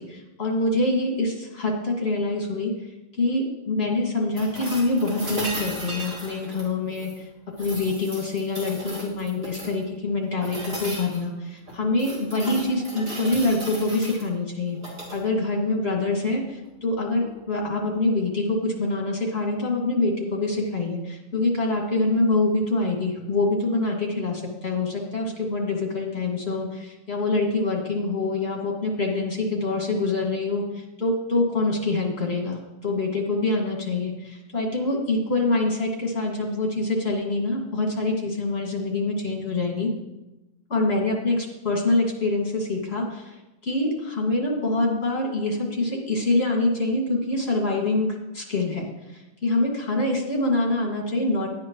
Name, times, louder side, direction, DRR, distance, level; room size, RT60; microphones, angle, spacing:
voice 1, 0.0-2.7 3.2-7.3 7.6-14.8 15.1-39.9 40.7-43.3 43.6-48.1 48.3-48.8 49.1-51.5, left 2 dB, 50° left, -2 dB, 2.4 m, -25 dB
sound 1, 4.4-7.2 7.6-9.8 10.4-11.2 11.7-14.2 14.7-15.2 17.2-17.3, right 1 dB, 50° right, 2.5 m, -36 dB
11.0 x 9.4 x 3.1 m, 0.99 s
omnidirectional pair, 1.4 m